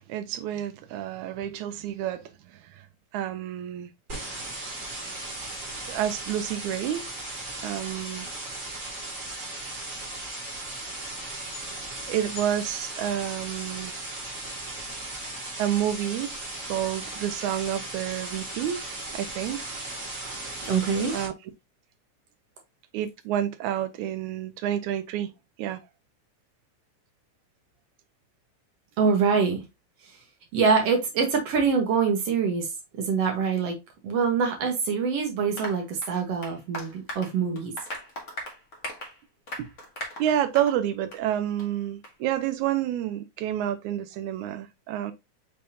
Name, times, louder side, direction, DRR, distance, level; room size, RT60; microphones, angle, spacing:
voice 1, 0.0-2.3 2.6-2.9 3.1-3.9 5.9-7.1 7.6-8.3 12.1-13.9 15.6-16.4 16.7-19.7 21.1-21.3 22.9-25.3 25.6-25.8 40.2-45.1, right 11 dB, 85° right, 2.0 m, -29 dB
sound 1, 4.1-21.3, right 2 dB, 30° right, 1.8 m, -37 dB
voice 2, 20.6-21.1 29.0-29.6 30.5-32.7 33.0-33.8 34.0-37.7, right 5 dB, 65° right, 1.9 m, -24 dB
Applause, 35.6-40.8 41.1-41.2 41.6-41.7 42.0-42.1, left 1 dB, 50° left, 0.9 m, -39 dB
5.6 x 3.4 x 2.7 m
omnidirectional pair, 3.4 m